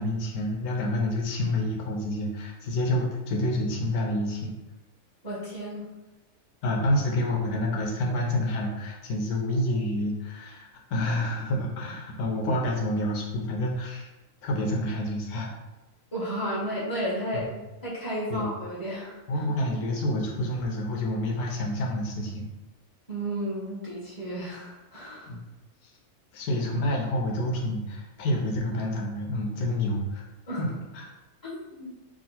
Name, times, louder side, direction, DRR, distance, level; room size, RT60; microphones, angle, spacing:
voice 1, 0.0-4.5 6.6-14.1 14.4-15.5 17.3-17.6 18.3-18.5 19.3-22.5 25.3-25.4 25.8-25.9 26.3-30.2 30.6-31.1, left 1 dB, 85° left, 0 dB, 1.2 m, -28 dB
voice 2, 5.2-5.9 16.1-17.5 17.8-19.2 23.1-25.3 30.5-30.6 31.4-31.9, equal, 15° left, -8 dB, 1.4 m, -33 dB
3.6 x 2.4 x 4.2 m, 1.1 s
omnidirectional pair, 1.6 m